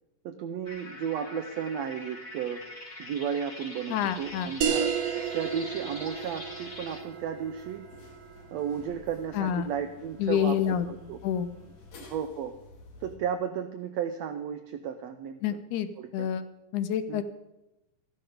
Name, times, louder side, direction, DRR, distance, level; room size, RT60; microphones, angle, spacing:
voice 1, 0.2-2.7 3.0-4.9 5.3-7.9 8.5-11.2 11.9-12.5 13.0-15.6 16.0-16.3 17.1-17.2, right 8 dB, 85° right, 8 dB, 1.5 m, -34 dB
sound 1, 0.6-7.0, left 2 dB, 35° left, 0.7 m, -44 dB
voice 2, 3.9-4.5 9.3-9.7 10.2-10.9 11.2-11.5 15.4-16.4 16.7-17.2, left 9 dB, 75° left, 11 dB, 2.0 m, -28 dB
sound 2, 4.1-13.2, left 3 dB, 55° left, 2.7 m, -53 dB
sound 3, 4.6-9.7, right 7 dB, 55° right, 1.9 m, -33 dB
13.5 x 11.0 x 5.0 m, 0.94 s
omnidirectional pair, 3.8 m